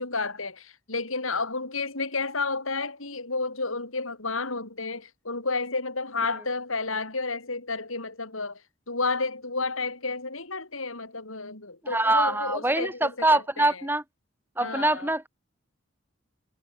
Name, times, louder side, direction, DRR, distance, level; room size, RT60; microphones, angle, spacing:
voice 1, 0.0-8.6 8.9-13.8 14.6-15.1, left 3 dB, 90° left, 5.6 m, -31 dB
voice 2, 11.9-14.0 14.6-15.3, right 2 dB, 10° right, 4.5 m, -24 dB
head